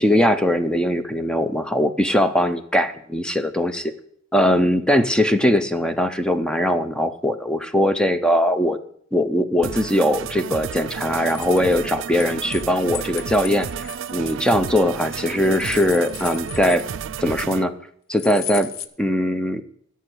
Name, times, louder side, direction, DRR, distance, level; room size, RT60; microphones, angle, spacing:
voice 1, 0.0-3.9 4.3-8.8 9.1-16.8 17.2-17.7 18.1-18.7 19.0-19.6, equal, 5° left, 10 dB, 0.6 m, -20 dB
sound 1, 9.6-17.6, right 7 dB, 65° right, 0.4 m, -32 dB
sound 2, 11.3-12.6 12.9-14.9 15.3-17.2 18.2-18.9, left 10 dB, 90° left, 0.7 m, -36 dB
11.0 x 6.9 x 7.8 m, 0.68 s
head